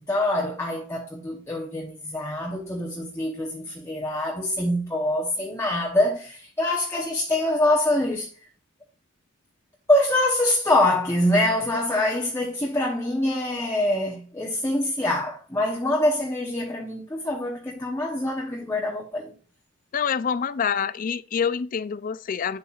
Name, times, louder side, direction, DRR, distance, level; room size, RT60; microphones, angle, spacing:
voice 1, 0.0-8.3 9.9-19.3, left 1 dB, 15° left, 0.8 m, -25 dB
voice 2, 19.9-22.6, left 7 dB, 40° left, 0.3 m, -26 dB
9.2 x 7.0 x 2.4 m
head